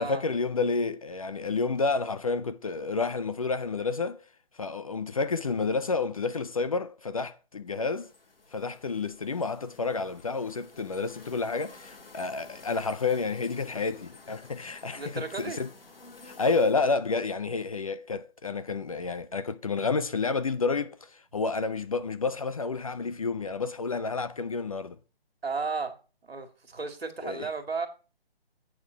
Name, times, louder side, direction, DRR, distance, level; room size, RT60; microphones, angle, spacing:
voice 1, 0.0-4.2 4.6-8.1 8.5-15.7 16.2-25.0 27.2-27.5, left 4 dB, 35° left, 0.4 m, -30 dB
sound 1, 7.7-16.7, left 3 dB, 65° left, 2.1 m, -52 dB
voice 2, 14.9-15.6 25.4-25.9 26.2-27.9, right 4 dB, 75° right, 2.1 m, -34 dB
8.7 x 3.8 x 6.9 m
figure-of-eight pair, 150°, 31 cm